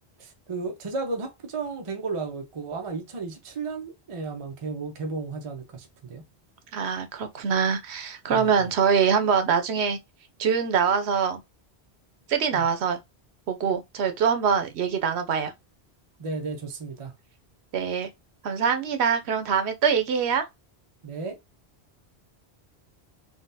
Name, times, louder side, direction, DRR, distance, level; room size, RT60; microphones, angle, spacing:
voice 1, 0.2-6.2 8.3-8.7 12.5-12.6 16.2-17.1 21.0-21.4, right 4 dB, 35° right, 0.6 m, -34 dB
voice 2, 6.7-10.0 10.4-11.4 12.3-13.0 13.5-15.5 17.7-18.1 18.4-20.5, right 6 dB, 80° right, 0.9 m, -24 dB
3.7 x 2.2 x 2.6 m
omnidirectional pair, 1.1 m